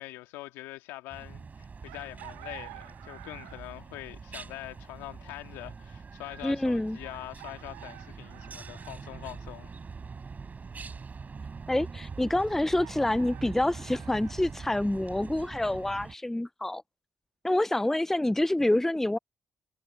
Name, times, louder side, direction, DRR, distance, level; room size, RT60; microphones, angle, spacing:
voice 1, 0.0-9.7, left 18 dB, 85° left, 1.9 m, -43 dB
sound 1, 1.1-16.2, right 5 dB, 40° right, 3.8 m, -43 dB
Chicken rooster, 1.9-3.8 5.5-5.6 7.1-9.0 12.5-14.3, right 19 dB, 90° right, 1.5 m, -50 dB
voice 2, 6.4-7.0 11.7-16.8 17.4-19.2, left 1 dB, 10° left, 0.4 m, -27 dB
hypercardioid pair, 45°, 4 cm